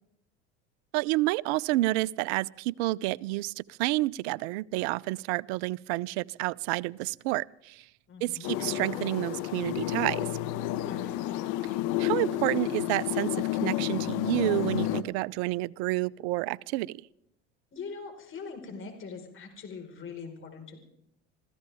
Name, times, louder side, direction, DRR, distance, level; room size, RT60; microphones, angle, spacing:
voice 1, 0.9-7.8 8.2-10.3 12.0-17.0, right 19 dB, 65° right, 22 dB, 0.6 m, -29 dB
voice 2, 8.1-8.5 10.8-11.3 17.7-20.8, left 5 dB, 35° left, 3 dB, 4.8 m, -42 dB
sound 1, 8.4-15.0, left 14 dB, 60° left, 1.2 m, -30 dB
26.5 x 15.5 x 3.5 m, 0.77 s
hypercardioid pair, 75°, 34 cm